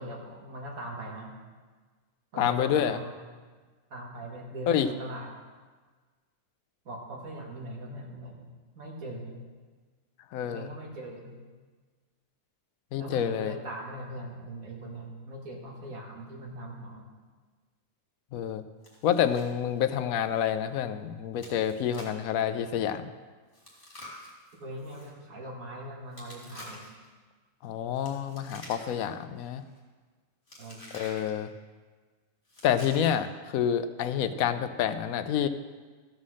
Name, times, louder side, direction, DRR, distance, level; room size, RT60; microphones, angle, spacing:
voice 1, 0.0-1.3 2.3-3.1 3.9-5.3 6.9-8.5 8.8-9.4 10.4-11.3 13.0-17.1 24.6-26.9 30.6-31.0, right 1 dB, 85° right, -1 dB, 2.1 m, -40 dB
voice 2, 2.4-3.0 4.7-4.9 10.3-10.7 12.9-13.5 18.3-18.6 19.0-23.1 27.6-29.6 30.9-31.5 32.6-35.5, left 9 dB, 85° left, 12 dB, 1.1 m, -28 dB
Chewing mastication, 18.8-19.5 19.8-19.9 20.4-20.5 21.4-22.2 23.5-25.1 26.1-27.1 27.9-29.1 29.4-29.8 30.5-31.3 32.4-33.3, left 1 dB, 40° left, 2.7 m, -48 dB
14.5 x 5.6 x 6.3 m, 1.4 s
omnidirectional pair, 1.4 m